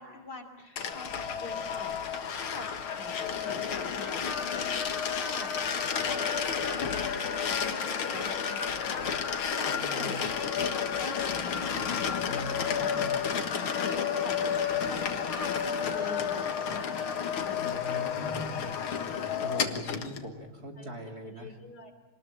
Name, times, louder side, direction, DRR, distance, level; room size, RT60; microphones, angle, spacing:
voice 1, 0.0-4.2 4.8-5.5 6.0-11.8 12.4-12.9 13.7-14.4 14.7-18.0 20.0-20.1 20.8-20.9 21.2-21.9, left 2 dB, 45° left, 6 dB, 3.7 m, -45 dB
sound 1, 0.8-20.2, left 7 dB, 70° left, 2.4 m, -31 dB
voice 2, 9.7-10.2 12.2-13.2 17.5-18.7 19.4-21.6, equal, 40° right, 2 dB, 3.6 m, -41 dB
27.0 x 20.5 x 9.1 m, 1.1 s
omnidirectional pair, 2.4 m